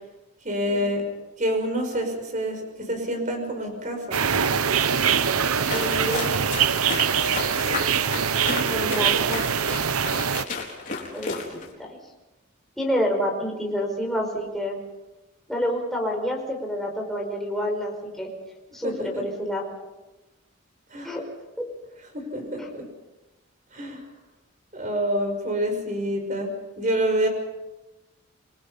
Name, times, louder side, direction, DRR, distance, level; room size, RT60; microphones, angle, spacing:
voice 1, 0.4-1.0 1.4-4.2 18.8-19.2 20.9-21.2 22.1-22.9 23.7-24.0 24.7-26.5 26.8-27.3, equal, 35° right, 4 dB, 5.6 m, -27 dB
sound 1, 4.1-10.4, right 7 dB, 85° right, 0.9 m, -23 dB
sound 2, 5.6-11.7, left 4 dB, 35° left, 4.4 m, -33 dB
voice 2, 5.7-6.3 8.6-9.4 11.1-12.0 12.8-14.8 15.5-18.3 18.7-19.7 21.0-21.2 22.6-22.7, equal, ahead, -1 dB, 5.2 m, -28 dB
28.5 x 22.5 x 5.7 m, 1.0 s
head